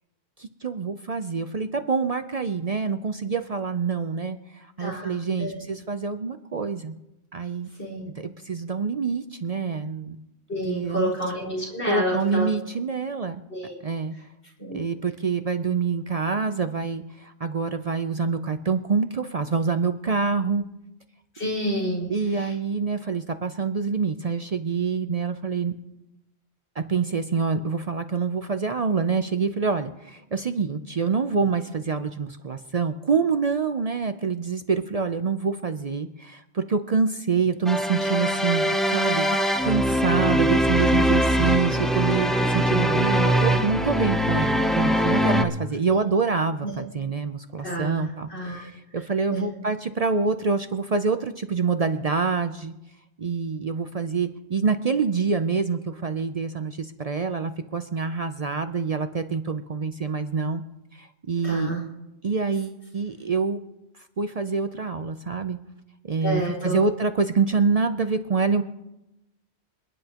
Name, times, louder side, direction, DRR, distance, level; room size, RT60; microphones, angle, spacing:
voice 1, 0.4-6.9 7.3-7.7 8.2-10.2 10.6-11.1 11.8-13.4 13.8-14.1 14.7-20.6 22.1-25.7 26.8-52.7 53.2-60.6 60.9-61.7 62.2-63.6 64.2-65.6 66.0-68.6, right 5 dB, 45° right, 8 dB, 0.5 m, -26 dB
voice 2, 4.8-5.7 7.8-8.1 10.5-12.5 13.5-13.8 14.6-14.8 21.3-22.5 45.9-46.0 46.6-46.7 47.6-48.0 48.3-48.7 49.3-49.5 61.4-61.8 66.2-66.8, equal, 80° left, -4 dB, 4.8 m, -29 dB
sound 1, 37.7-45.4, equal, ahead, 0.6 m, -22 dB
27.5 x 9.9 x 2.9 m, 0.91 s
omnidirectional pair, 1.1 m